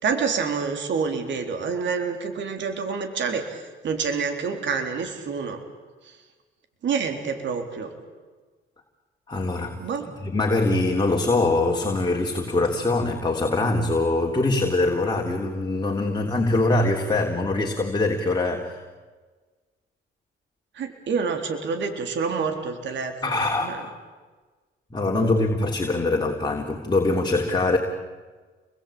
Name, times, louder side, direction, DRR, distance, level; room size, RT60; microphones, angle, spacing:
voice 1, 0.0-5.6 6.8-7.9 9.8-10.1 20.8-23.8 25.1-25.3, right 5 dB, 65° right, 5 dB, 4.0 m, -28 dB
voice 2, 9.3-9.8 10.2-18.8 23.2-24.0 24.9-27.8, left 2 dB, 20° left, 1 dB, 3.6 m, -23 dB
29.0 x 22.0 x 8.8 m, 1.4 s
cardioid pair, 90°, 20 cm